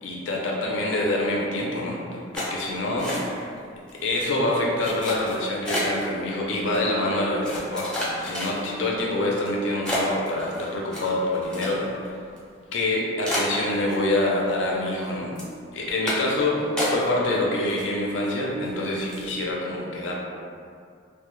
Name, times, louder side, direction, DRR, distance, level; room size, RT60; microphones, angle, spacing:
voice 1, 0.0-3.3 3.9-11.8 12.7-15.3 15.7-20.1, left 1 dB, 80° left, -2 dB, 0.5 m, -26 dB
sound 1, 2.3-3.6 3.9-4.3 4.8-6.1 6.7-6.8 7.4-8.8 9.3-9.5 9.8-12.1 12.4-12.5 12.8-12.9 13.2-14.3 14.6-15.1 15.4-15.6 16.1-16.4 16.8-17.4 17.6-18.3 18.6-18.8 19.1-19.3, left 1 dB, 5° left, 0.4 m, -31 dB
2.1 x 2.0 x 2.9 m, 2.3 s
head